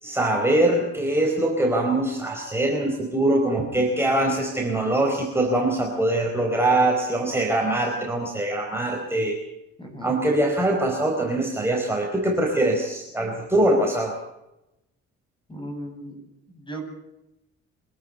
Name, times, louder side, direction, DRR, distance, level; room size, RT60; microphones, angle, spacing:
voice 1, 0.0-9.4 10.0-14.2, right 1 dB, 10° right, 0 dB, 4.6 m, -23 dB
voice 2, 9.8-10.1 15.5-16.2 16.5-16.9, right 1 dB, 15° left, 4 dB, 7.8 m, -36 dB
25.0 x 13.0 x 8.8 m, 0.89 s
cardioid pair, 90°, 30 cm